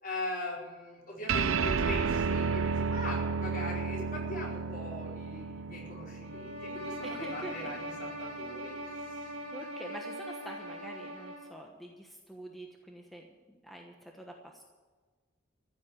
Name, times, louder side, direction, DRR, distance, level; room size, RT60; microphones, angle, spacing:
voice 1, 0.0-8.8 9.1-9.2, left 1 dB, 45° left, -3 dB, 4.9 m, -40 dB
sound 1, 1.3-8.1, right 5 dB, 70° right, 0.6 m, -32 dB
sound 2, 6.2-11.6, right 1 dB, 90° right, 2.2 m, -41 dB
voice 2, 7.0-7.7 9.2-14.6, right 1 dB, ahead, 1 dB, 1.1 m, -46 dB
15.0 x 7.5 x 9.7 m, 1.4 s
head